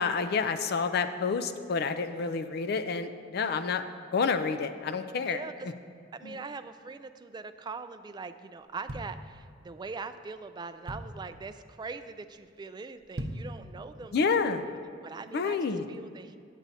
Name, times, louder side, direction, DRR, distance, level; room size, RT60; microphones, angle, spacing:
voice 1, 0.0-3.8 4.1-5.4 6.2-6.4 14.1-14.7 15.3-15.9, left 5 dB, 55° left, 9 dB, 0.4 m, -29 dB
voice 2, 5.1-5.7 6.1-14.3 15.0-16.4, right 4 dB, 25° right, 10 dB, 0.3 m, -42 dB
sound 1, 8.6-9.8 10.3-10.4 10.6-11.4 11.8-12.1 12.4-12.5 13.0-13.6 14.0-14.1, right 1 dB, 55° right, 0.7 m, -39 dB
8.7 x 8.2 x 4.1 m, 2.3 s
head